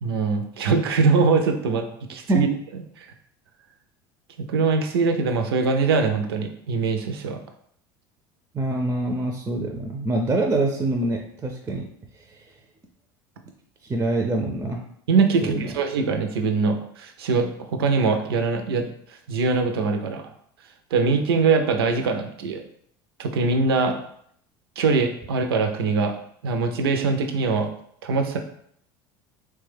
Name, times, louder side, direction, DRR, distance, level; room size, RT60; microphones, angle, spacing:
voice 1, 0.0-2.5 4.5-7.4 15.1-18.9 19.3-20.2 20.9-22.6 23.2-24.0 24.8-26.2 26.4-27.7 28.0-28.4, right 4 dB, 90° right, 5 dB, 0.4 m, -22 dB
voice 2, 8.5-11.8 13.8-14.8 15.4-15.8, right 2 dB, 20° right, 3 dB, 0.4 m, -25 dB
3.1 x 2.2 x 3.3 m, 0.67 s
hypercardioid pair, 85°, 12 cm